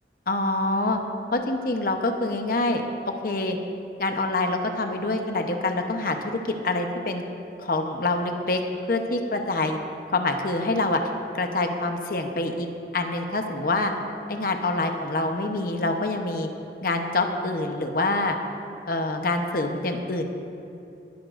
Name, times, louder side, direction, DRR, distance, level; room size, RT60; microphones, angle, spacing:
voice 1, 0.3-1.0 1.3-3.6 4.0-7.2 7.6-8.6 8.9-9.8 10.1-11.0 11.3-12.7 12.9-13.9 14.3-16.5 16.8-18.4 18.9-20.2, left 2 dB, 55° left, 4 dB, 0.9 m, -26 dB
21.0 x 11.5 x 2.6 m, 2.6 s
head